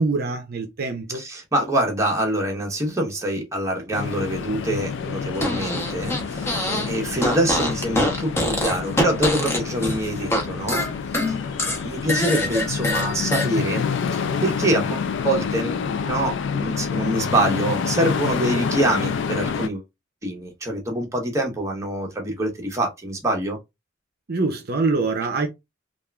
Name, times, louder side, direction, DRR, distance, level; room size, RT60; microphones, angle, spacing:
voice 1, 0.0-1.2 24.3-25.5, right 3 dB, 50° right, 0.6 m, -24 dB
voice 2, 1.1-10.9 11.3-11.4 11.6-15.8 16.1-19.8 20.2-23.6, right 1 dB, 15° right, 0.8 m, -25 dB
sound 1, 3.9-19.7, left 6 dB, 60° left, 0.4 m, -28 dB
Fart, 5.3-6.9 7.2-10.4 10.7-13.5, left 1 dB, 15° left, 0.8 m, -24 dB
3.4 x 2.4 x 2.2 m
head